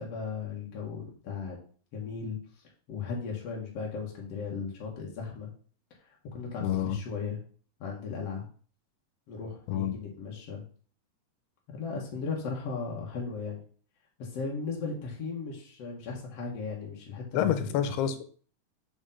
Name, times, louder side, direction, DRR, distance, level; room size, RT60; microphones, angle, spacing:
voice 1, 0.0-1.6 1.9-5.5 6.3-7.4 7.8-8.5 9.3-10.6 11.7-13.6 14.2-17.8, left 5 dB, 55° left, -2 dB, 1.9 m, -36 dB
voice 2, 6.6-7.0 9.7-10.0 17.4-18.2, left 10 dB, 90° left, 10 dB, 2.8 m, -28 dB
6.2 x 5.1 x 5.5 m, 0.43 s
omnidirectional pair, 4.5 m